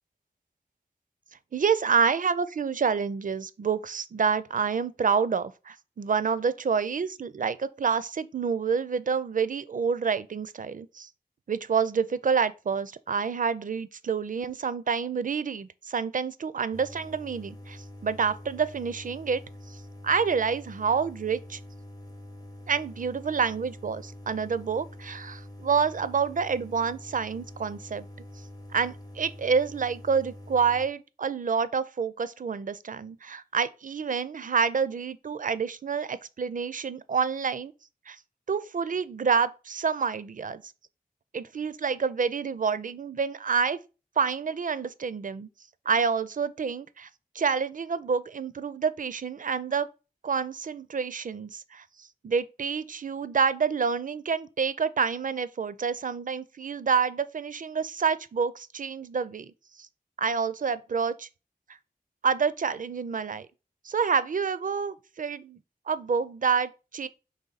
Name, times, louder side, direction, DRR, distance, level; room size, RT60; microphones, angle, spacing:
voice 1, 1.5-11.1 11.5-19.4 19.7-21.6 22.7-28.1 28.7-37.7 38.1-38.2 38.5-40.6 41.3-43.8 44.2-45.5 45.9-47.1 47.3-49.9 50.2-59.5 59.8-59.9 60.2-61.3 62.2-63.5 63.8-65.6 65.9-67.1, right 6 dB, 60° right, 0.4 m, -28 dB
sound 1, 16.7-30.9, left 1 dB, 25° left, 0.7 m, -45 dB
4.1 x 3.0 x 3.9 m
wide cardioid pair, 55°, 16 cm